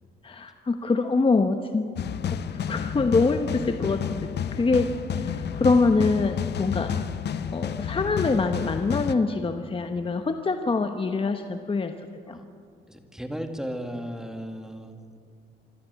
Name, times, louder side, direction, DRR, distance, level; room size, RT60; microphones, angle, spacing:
voice 1, 0.2-1.9 2.2-4.9 5.1-6.9 7.5-11.9 12.3-12.4, left 3 dB, 25° left, 7 dB, 1.1 m, -25 dB
sound 1, 2.0-9.1, left 8 dB, 60° left, 0.9 m, -30 dB
voice 2, 12.9-14.9, equal, 5° right, 5 dB, 2.1 m, -35 dB
26.0 x 13.0 x 8.2 m, 2.2 s
cardioid pair, 90°, 20 cm